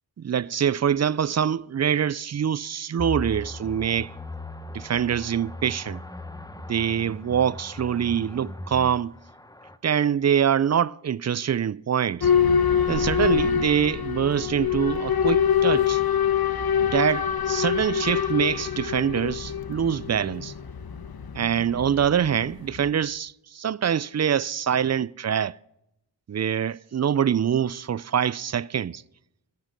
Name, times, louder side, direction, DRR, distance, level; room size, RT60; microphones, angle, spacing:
voice 1, 0.2-4.1 4.7-6.0 6.7-9.2 9.8-12.3 12.9-16.0 16.8-20.5 21.3-25.6 26.3-29.0, right 8 dB, 40° right, 0.4 m, -24 dB
sound 1, 3.0-9.8, left 1 dB, 10° left, 1.0 m, -38 dB
Boat Water vehicle / Alarm, 12.2-22.9, left 8 dB, 50° left, 1.1 m, -25 dB
16.5 x 11.0 x 5.2 m
wide cardioid pair, 70°, 46 cm